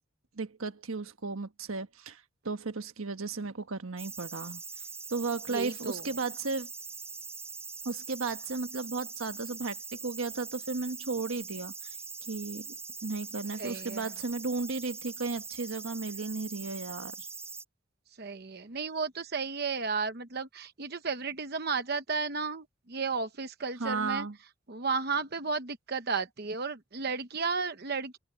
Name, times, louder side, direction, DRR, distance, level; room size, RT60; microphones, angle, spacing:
voice 1, 0.3-4.6 5.1-6.7 7.8-11.7 12.3-12.8 13.0-17.2 23.8-24.4, right 3 dB, 80° right, 1.4 m, -34 dB
sound 1, 4.0-17.6, right 5 dB, 10° right, 5.5 m, -42 dB
voice 2, 5.5-6.1 13.6-14.1 18.2-24.3 24.7-28.2, right 4 dB, 50° right, 0.9 m, -33 dB
open air
head